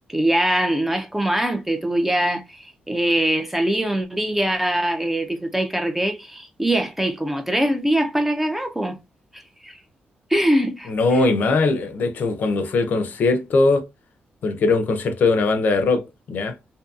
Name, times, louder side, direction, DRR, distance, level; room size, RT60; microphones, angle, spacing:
voice 1, 0.1-9.0 9.3-9.8 10.3-10.9, right 1 dB, 5° right, 0.3 m, -22 dB
voice 2, 10.9-13.8 14.4-16.6, left 3 dB, 55° left, 0.5 m, -20 dB
2.6 x 2.6 x 2.3 m
wide cardioid pair, 170°, 4 cm